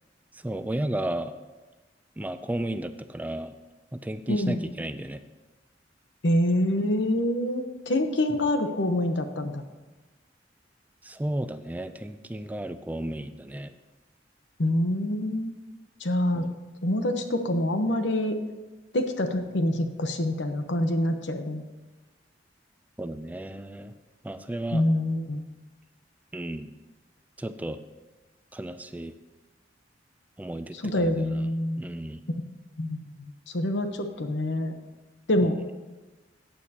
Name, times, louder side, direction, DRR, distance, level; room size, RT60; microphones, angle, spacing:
voice 1, 0.3-1.3 2.2-3.5 3.9-5.2 8.3-8.5 11.0-13.7 16.4-16.5 23.0-23.9 24.2-24.8 26.3-26.8 27.4-27.8 28.5-29.1 30.4-31.5 31.8-32.2 35.4-35.5, right 1 dB, 10° right, 11 dB, 0.3 m, -33 dB
voice 2, 4.3-4.6 6.2-9.6 14.6-15.5 16.0-16.5 16.8-18.3 18.9-21.6 24.7-25.4 30.8-31.8 32.8-34.7 35.3-35.6, left 1 dB, 80° left, 7 dB, 0.9 m, -26 dB
14.5 x 9.0 x 2.9 m, 1.2 s
head